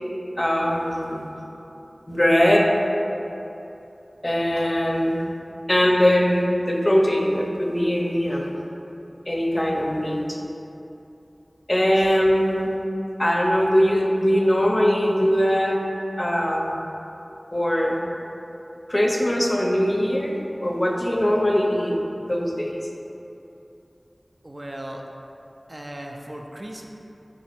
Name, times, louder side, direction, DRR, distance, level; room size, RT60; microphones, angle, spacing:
voice 1, 0.4-1.3 2.1-2.8 4.2-5.2 5.7-8.5 9.3-10.4 11.7-12.7 13.2-15.8 16.2-16.8 17.5-18.0 18.9-21.9 22.2-22.8, equal, 30° left, -1 dB, 0.5 m, -21 dB
voice 2, 24.4-25.0 25.7-26.9, right 1 dB, 45° right, 0 dB, 0.4 m, -36 dB
3.5 x 2.9 x 4.3 m, 2.9 s
wide cardioid pair, 40°, 0 cm